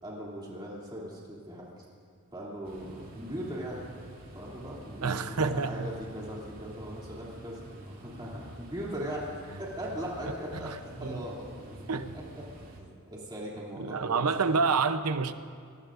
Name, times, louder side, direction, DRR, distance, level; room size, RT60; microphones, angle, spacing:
voice 1, 0.0-1.8 2.3-3.8 4.3-9.3 9.6-11.8 12.1-12.4 12.7-14.3 14.6-14.7, equal, 20° right, -5 dB, 2.9 m, -39 dB
sound 1, 2.6-12.8, right 1 dB, 60° right, 3.2 m, -48 dB
voice 2, 5.0-5.9 10.5-10.8 11.0-11.2 11.9-12.1 13.8-15.3, right 4 dB, 85° right, 10 dB, 0.8 m, -28 dB
27.0 x 20.0 x 2.6 m, 2.2 s
head